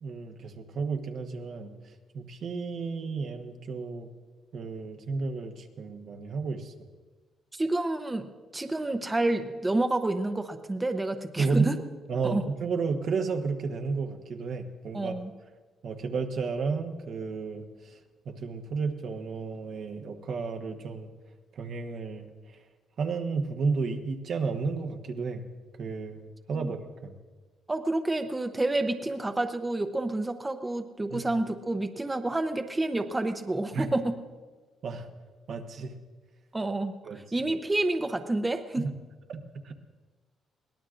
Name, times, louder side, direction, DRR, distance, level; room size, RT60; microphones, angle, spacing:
voice 1, 0.0-1.7 2.1-4.1 4.5-6.7 11.4-11.7 12.1-15.1 15.8-18.0 18.2-21.1 21.6-22.3 23.0-25.4 25.8-27.1 31.1-31.3 33.7-33.9 34.8-35.1 35.5-35.9 37.0-37.2 38.8-38.9 39.3-39.7, right 4 dB, 65° right, 5 dB, 1.1 m, -32 dB
voice 2, 7.5-8.3 8.5-11.8 12.2-12.4 14.9-15.3 26.5-26.7 27.7-34.2 36.5-38.9, right 2 dB, 20° right, 6 dB, 0.7 m, -29 dB
22.5 x 17.5 x 2.5 m, 1.4 s
cardioid pair, 90°, 0 cm